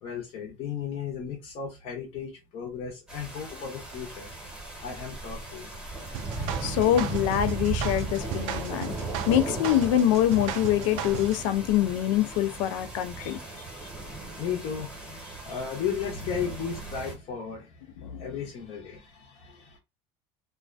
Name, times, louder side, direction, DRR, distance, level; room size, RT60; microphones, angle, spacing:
voice 1, 0.0-4.3 4.8-5.7 13.2-13.9 14.3-19.8, left 7 dB, 40° left, 0.7 m, -35 dB
sound 1, 3.1-17.1, right 3 dB, 5° right, 0.9 m, -37 dB
sound 2, 6.1-11.5, right 9 dB, 75° right, 0.4 m, -36 dB
voice 2, 6.6-8.9 9.3-13.4 18.0-18.2, left 12 dB, 80° left, 0.4 m, -25 dB
2.4 x 2.2 x 2.4 m
cardioid pair, 165°, 16 cm